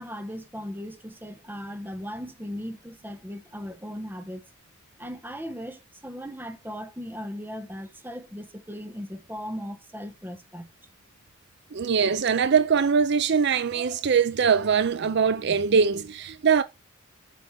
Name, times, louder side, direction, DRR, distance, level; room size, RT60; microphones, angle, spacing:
voice 1, 0.0-4.5 5.0-10.7, equal, 10° right, 1.1 m, -37 dB
voice 2, 11.7-16.6, right 6 dB, 55° right, 0.5 m, -22 dB
7.7 x 5.6 x 4.2 m
head